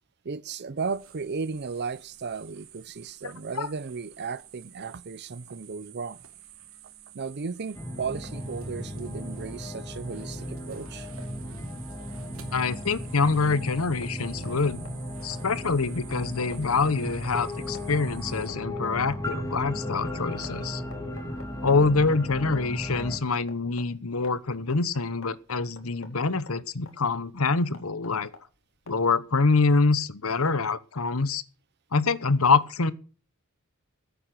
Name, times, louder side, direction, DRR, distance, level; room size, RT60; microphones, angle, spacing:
voice 1, 0.2-6.2 7.1-11.1, right 5 dB, 50° right, 0.6 m, -35 dB
sound 1, 0.8-18.5, right 11 dB, 75° right, 2.5 m, -50 dB
sound 2, 7.7-23.2, left 1 dB, 15° left, 3.0 m, -36 dB
voice 2, 12.5-14.8 15.2-20.8 21.6-28.3 28.9-31.4 31.9-32.9, left 4 dB, 85° left, 1.1 m, -25 dB
sound 3, 13.2-29.3, left 3 dB, 65° left, 3.5 m, -52 dB
15.0 x 8.9 x 6.1 m
head